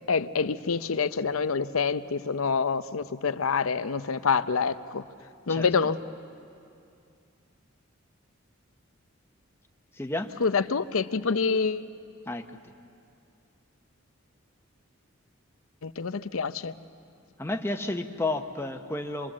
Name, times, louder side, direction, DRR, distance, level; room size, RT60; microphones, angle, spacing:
voice 1, 0.1-5.0 5.5-6.0 10.4-11.9 15.8-16.7, left 5 dB, 85° left, 0.7 m, -26 dB
voice 2, 10.0-10.3 12.3-12.4 17.4-19.3, left 2 dB, 10° left, 0.9 m, -31 dB
26.5 x 22.5 x 7.4 m
head